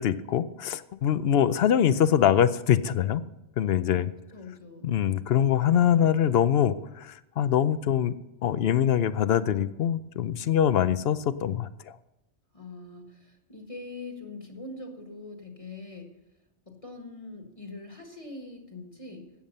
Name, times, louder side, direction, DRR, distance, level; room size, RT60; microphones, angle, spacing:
voice 1, 0.0-3.2 3.6-4.1 4.8-8.1 8.4-11.7, left 9 dB, 65° left, 15 dB, 0.8 m, -23 dB
voice 2, 3.9-5.0 12.5-16.1 16.6-19.3, left 3 dB, 30° left, 3 dB, 1.6 m, -43 dB
14.5 x 9.0 x 5.4 m, 0.91 s
omnidirectional pair, 1.2 m